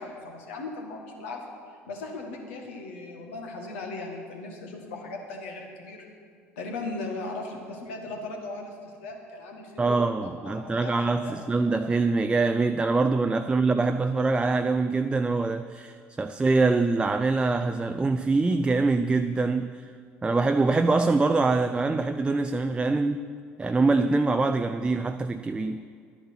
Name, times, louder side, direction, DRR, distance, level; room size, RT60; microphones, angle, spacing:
voice 1, 0.0-1.4 1.9-6.1 6.6-11.3, left 3 dB, 70° left, 1.9 m, -38 dB
voice 2, 9.8-19.9 20.2-23.3 23.6-25.8, right 3 dB, 15° right, 0.4 m, -24 dB
11.5 x 10.0 x 6.0 m
figure-of-eight pair, 60°, 7 cm